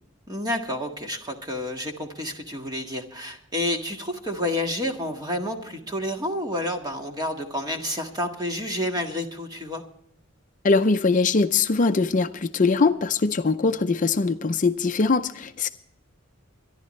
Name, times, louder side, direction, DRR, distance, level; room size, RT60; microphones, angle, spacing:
voice 1, 0.3-9.8, left 1 dB, 20° right, 3 dB, 1.7 m, -29 dB
voice 2, 10.6-15.7, left 4 dB, 40° left, 8 dB, 0.5 m, -22 dB
24.5 x 11.0 x 3.2 m, 0.76 s
head